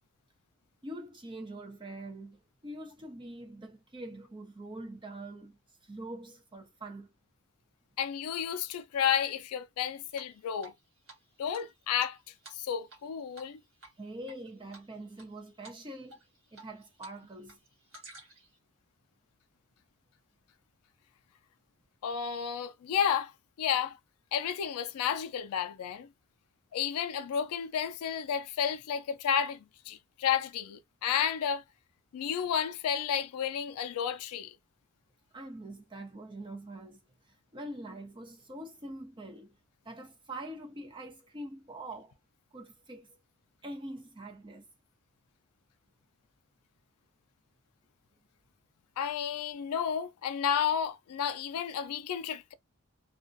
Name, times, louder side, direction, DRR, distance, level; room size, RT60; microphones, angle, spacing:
voice 1, 0.8-7.1 14.0-16.2 16.5-17.6 35.3-37.0 37.3-39.6 39.8-42.1 42.5-43.2 43.6-44.6, right 1 dB, 20° right, 0.6 m, -44 dB
voice 2, 8.0-10.7 11.4-12.2 12.5-13.6 22.0-23.3 23.6-24.0 24.3-26.1 26.7-31.6 32.1-34.5 49.0-52.5, left 8 dB, 80° left, 0.3 m, -31 dB
Drip, 10.1-10.8 11.1-11.2 11.5-13.1 13.3-13.5 13.8-14.4 14.7-15.3 15.6-15.8 16.1-17.1 17.4-18.5, right 3 dB, 60° right, 1.3 m, -52 dB
2.4 x 2.2 x 2.5 m
head